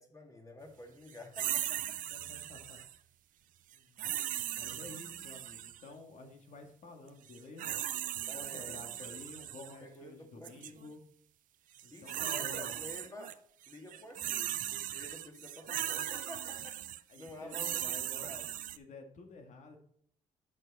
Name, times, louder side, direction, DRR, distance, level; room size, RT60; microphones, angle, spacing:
voice 1, 0.0-2.0 8.3-9.4 9.7-10.9 11.9-16.8 17.2-18.5, left 1 dB, 25° left, 3 dB, 2.1 m, -50 dB
woman growl, 1.3-3.0 4.0-5.8 7.3-9.7 10.4-10.7 11.8-13.3 13.6-18.8, right 12 dB, 75° right, 0.6 m, -38 dB
voice 2, 2.1-2.8 3.7-4.0 4.3-7.8 8.2-11.0 11.8-12.7 17.1-18.3 18.8-19.8, left 3 dB, 65° left, 4 dB, 2.0 m, -51 dB
8.7 x 6.3 x 4.1 m, 0.66 s
cardioid pair, 110°, 14 cm